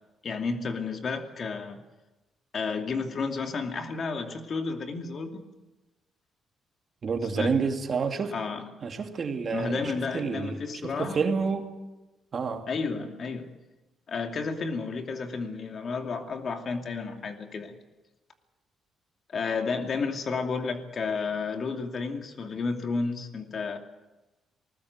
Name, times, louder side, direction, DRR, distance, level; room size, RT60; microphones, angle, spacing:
voice 1, 0.2-1.8 2.5-5.4 7.4-7.6 8.3-8.7 9.5-11.2 12.7-13.5 14.1-17.7 19.3-23.8, left 4 dB, 50° left, 4 dB, 2.7 m, -31 dB
voice 2, 7.0-8.3 8.8-11.7 12.3-12.7, right 5 dB, 45° right, 4 dB, 2.6 m, -29 dB
20.0 x 19.0 x 8.2 m, 1.1 s
cardioid pair, 90°, 0 cm